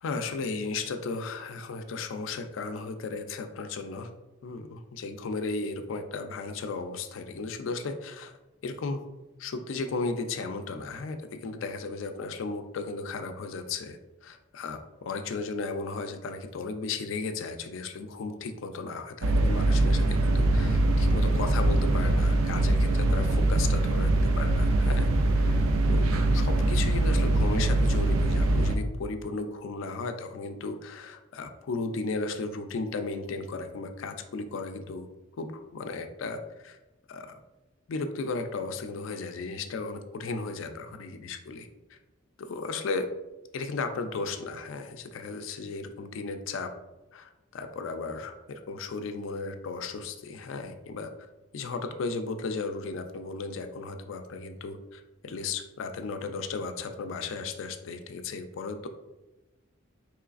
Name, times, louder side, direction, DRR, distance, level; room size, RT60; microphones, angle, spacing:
voice 1, 0.0-4.1 4.4-8.3 8.6-9.0 9.4-25.1 25.4-25.6 25.9-26.1 26.3-35.1 35.4-36.8 37.1-37.3 37.9-41.7 42.4-43.1 43.5-46.7 47.1-51.1 51.5-58.9, left 3 dB, 65° left, 7 dB, 0.4 m, -35 dB
sound 1, 19.2-28.8, right 2 dB, 90° right, 0.4 m, -23 dB
3.9 x 3.1 x 2.4 m, 1.1 s
head